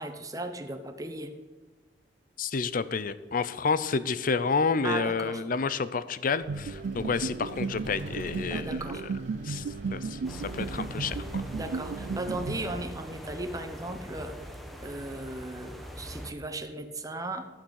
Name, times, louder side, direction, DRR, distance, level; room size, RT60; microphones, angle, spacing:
voice 1, 0.0-1.3 4.8-5.4 8.5-9.0 11.5-14.4 14.8-17.5, right 2 dB, 20° right, 7 dB, 0.9 m, -36 dB
voice 2, 2.4-8.8 9.4-9.6 9.9-11.2, left 5 dB, 50° left, 15 dB, 0.6 m, -29 dB
Vehicle, 6.4-12.8, right 1 dB, 45° right, 2.7 m, -46 dB
sound 1, 6.5-13.2, right 4 dB, 65° right, 0.4 m, -35 dB
sound 2, 10.2-16.3, equal, ahead, 1.2 m, -42 dB
15.0 x 6.5 x 6.4 m, 1.3 s
head